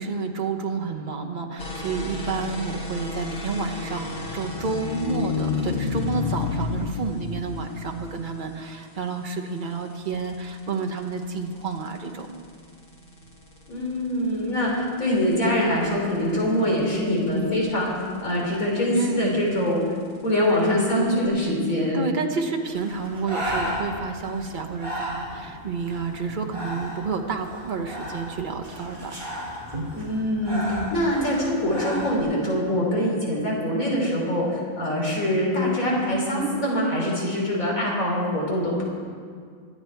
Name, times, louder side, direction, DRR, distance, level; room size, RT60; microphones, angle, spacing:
voice 1, 0.0-12.4 18.9-19.5 21.9-29.2, right 4 dB, 40° right, 4 dB, 1.2 m, -30 dB
sound 1, 1.6-21.2, left 1 dB, 45° left, 1.9 m, -40 dB
sound 2, 4.1-8.6, left 6 dB, 60° left, 0.6 m, -29 dB
voice 2, 13.7-17.9 18.2-19.8 20.2-22.0 29.9-38.8, equal, 80° left, -3 dB, 3.9 m, -24 dB
Breathing, 22.7-32.2, equal, 20° right, 3.5 m, -34 dB
23.5 x 8.7 x 4.6 m, 2.1 s
omnidirectional pair, 1.4 m